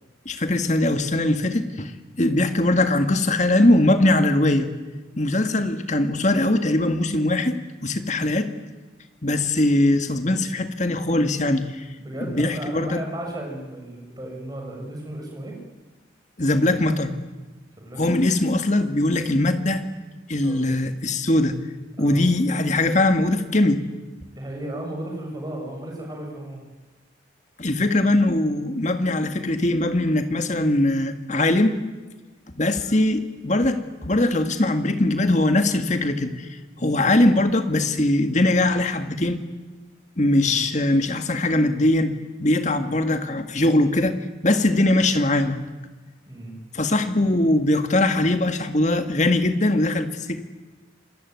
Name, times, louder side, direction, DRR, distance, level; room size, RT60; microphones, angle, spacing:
voice 1, 0.3-1.9 2.2-4.7 5.2-8.5 9.2-11.9 12.2-13.0 16.4-17.2 18.0-19.8 20.3-21.6 22.0-23.8 27.6-31.8 32.6-39.4 40.2-45.6 46.7-50.5, left 1 dB, 40° left, 8 dB, 1.9 m, -21 dB
voice 2, 12.0-15.6 17.8-18.2 20.3-20.9 22.0-22.2 24.3-26.7 36.7-37.1 40.3-40.6 46.3-46.6, right 1 dB, 20° right, 1 dB, 7.2 m, -35 dB
27.0 x 22.5 x 9.5 m, 1.2 s
head